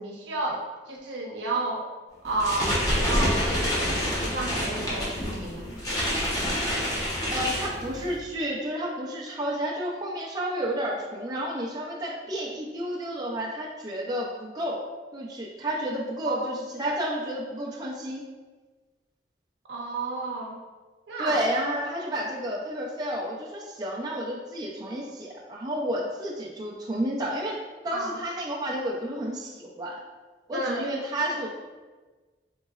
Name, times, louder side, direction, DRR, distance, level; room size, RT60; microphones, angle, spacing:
voice 1, 0.0-1.9 2.2-5.7 16.3-16.5 19.7-20.6 21.1-21.5 27.9-28.2 30.5-30.8, right 2 dB, 90° right, -2 dB, 0.7 m, -31 dB
sound 1, 2.2-8.2, equal, 20° left, 0.7 m, -27 dB
voice 2, 7.3-14.8 15.1-18.2 21.2-27.6 27.8-30.0 30.5-31.5, right 1 dB, 25° right, -3 dB, 0.4 m, -31 dB
3.8 x 3.0 x 2.3 m, 1.3 s
head